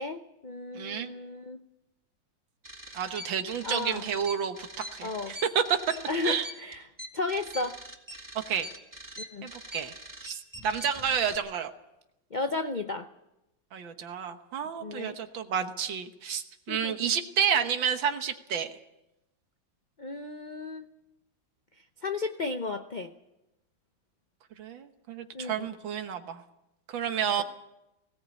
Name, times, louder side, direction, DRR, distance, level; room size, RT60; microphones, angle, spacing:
voice 1, 0.0-1.6 3.6-4.1 5.0-5.4 6.1-7.8 9.2-9.5 12.3-13.1 14.8-15.2 16.7-17.1 20.0-20.9 22.0-23.1 25.3-25.8 27.4-27.5, left 3 dB, 45° left, 7 dB, 0.6 m, -34 dB
voice 2, 0.7-1.1 2.9-5.6 6.2-6.5 8.4-8.7 9.4-9.9 10.2-11.7 13.7-18.7 24.6-26.4 26.9-27.4, right 8 dB, 85° right, 7 dB, 1.9 m, -30 dB
sound 1, 2.6-11.4, equal, 10° right, 1.9 m, -43 dB
18.5 x 17.5 x 8.3 m, 0.91 s
omnidirectional pair, 2.1 m